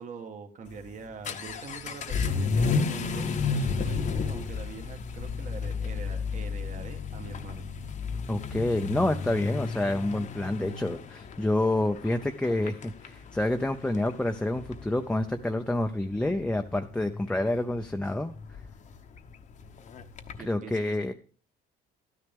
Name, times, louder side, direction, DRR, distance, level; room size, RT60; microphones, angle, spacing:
voice 1, 0.0-7.7 20.4-21.0, right 5 dB, 50° right, 4 dB, 1.6 m, -43 dB
Vehicle / Accelerating revving vroom, 0.7-20.5, left 5 dB, 45° left, 0.9 m, -33 dB
voice 2, 8.3-18.3 20.4-21.1, left 1 dB, 5° left, 5 dB, 0.6 m, -28 dB
12.0 x 9.8 x 3.6 m, 0.42 s
cardioid pair, 110°, 17 cm